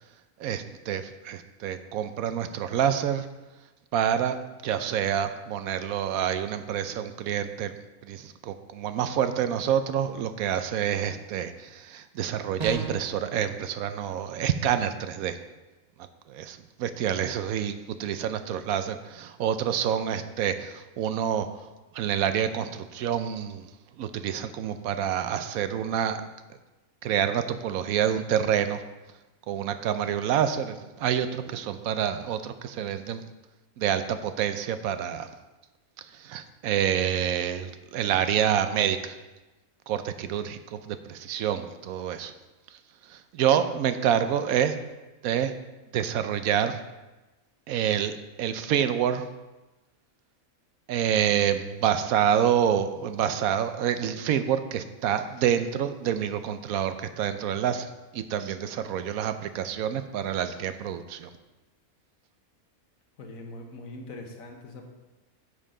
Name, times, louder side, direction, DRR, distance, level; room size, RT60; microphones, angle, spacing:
voice 1, 0.4-3.3 3.9-4.4 4.6-7.7 8.1-15.4 16.3-21.5 21.9-23.7 24.0-26.2 27.0-28.8 29.5-33.2 33.8-35.3 36.2-39.2 39.9-42.3 43.1-44.7 45.2-45.5 45.9-46.8 47.7-49.2 50.9-61.3, right 9 dB, 75° right, 10 dB, 1.0 m, -27 dB
sound 1, 12.6-13.1, right 3 dB, 30° right, 1.2 m, -34 dB
voice 2, 63.2-64.9, left 2 dB, 65° left, 3 dB, 1.6 m, -42 dB
9.9 x 7.4 x 3.8 m, 1.1 s
omnidirectional pair, 1.5 m